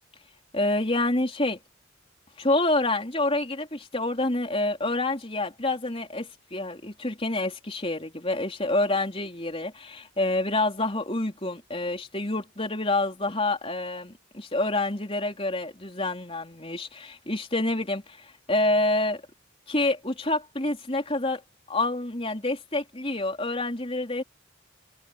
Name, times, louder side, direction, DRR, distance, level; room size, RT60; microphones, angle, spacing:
voice 1, 0.5-1.6 2.4-19.2 19.7-21.4 21.7-24.2, left 2 dB, 25° left, 4.1 m, -27 dB
head